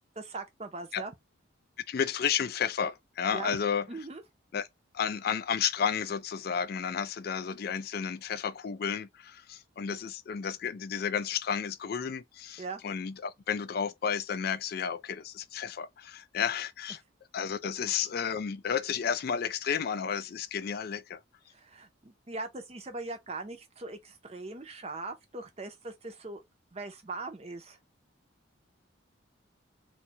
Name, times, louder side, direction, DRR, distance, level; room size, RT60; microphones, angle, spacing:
voice 1, 0.2-1.1 3.3-3.6 3.9-4.2 12.6-12.8 21.5-26.4 26.7-27.8, right 3 dB, 30° right, 0.6 m, -40 dB
voice 2, 1.9-3.9 4.5-4.7 4.9-17.0 17.3-21.2, left 7 dB, 50° left, 0.3 m, -32 dB
2.7 x 2.4 x 4.2 m
head